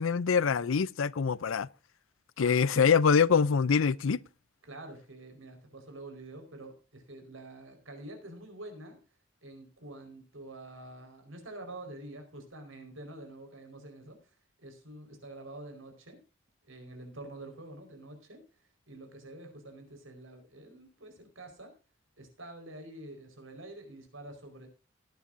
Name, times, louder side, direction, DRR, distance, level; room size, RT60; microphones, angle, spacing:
voice 1, 0.0-1.7 2.4-4.2, left 6 dB, 80° left, 0.5 m, -24 dB
voice 2, 2.4-3.0 4.7-9.0 9.4-14.3 14.6-16.2 16.7-18.4 18.9-21.7 22.2-24.7, right 2 dB, 85° right, 4.7 m, -47 dB
18.5 x 10.0 x 2.6 m
head